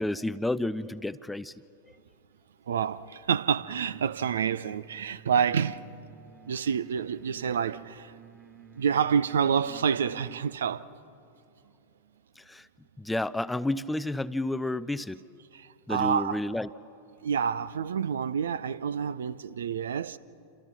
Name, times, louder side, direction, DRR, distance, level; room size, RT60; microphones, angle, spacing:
voice 1, 0.0-1.5 12.4-12.7 13.0-15.4 15.9-16.7, left 1 dB, 5° left, 0.5 m, -31 dB
voice 2, 2.7-5.8 6.5-8.1 8.7-10.9 15.5-16.4 17.2-20.2, right 7 dB, 65° right, 0.6 m, -28 dB
sound 1, 3.3-10.7, right 8 dB, 20° right, 2.1 m, -52 dB
28.0 x 27.0 x 6.1 m
figure-of-eight pair, 90°, 0 cm